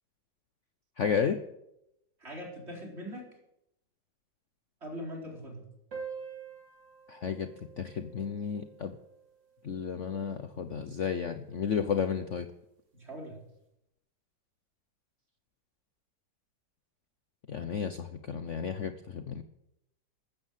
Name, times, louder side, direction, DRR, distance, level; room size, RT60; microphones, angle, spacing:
voice 1, 1.0-1.4 7.1-7.5 7.8-8.9 9.6-12.5 17.5-19.4, left 7 dB, 50° left, 9 dB, 1.0 m, -32 dB
voice 2, 2.2-3.2 4.8-5.6 12.9-13.3, equal, 35° right, 0 dB, 4.5 m, -41 dB
sound 1, 5.9-10.9, right 6 dB, 80° right, 3.6 m, -47 dB
14.0 x 14.0 x 7.5 m, 0.83 s
omnidirectional pair, 1.9 m